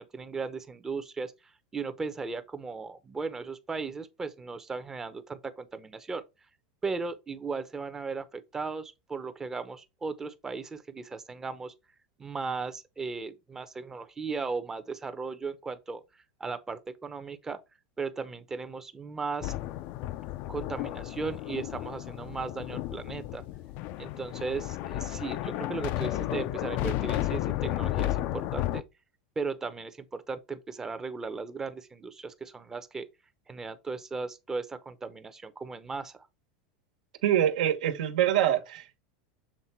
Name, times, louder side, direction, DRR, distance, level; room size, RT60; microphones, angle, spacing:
voice 1, 0.0-1.3 1.7-6.2 6.8-11.7 12.2-16.0 16.4-17.6 18.0-19.5 20.5-23.4 24.0-28.8 29.4-33.1 33.5-36.2, right 4 dB, 10° right, 0.7 m, -36 dB
sound 1, 19.4-28.8, left 15 dB, 45° left, 0.4 m, -33 dB
voice 2, 37.2-39.0, right 11 dB, 85° right, 1.3 m, -25 dB
7.3 x 3.6 x 4.4 m
supercardioid pair, 160°, 4 cm